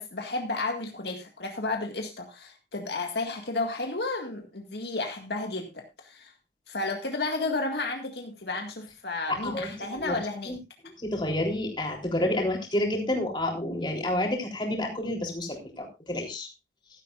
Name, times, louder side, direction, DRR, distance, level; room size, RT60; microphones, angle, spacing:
voice 1, 0.0-6.3 6.7-10.5, left 3 dB, 75° left, 3 dB, 1.9 m, -32 dB
voice 2, 9.3-10.1 10.5-10.6 11.0-16.5, left 1 dB, 25° left, 0 dB, 3.7 m, -29 dB
15.5 x 12.5 x 2.5 m, 0.24 s
head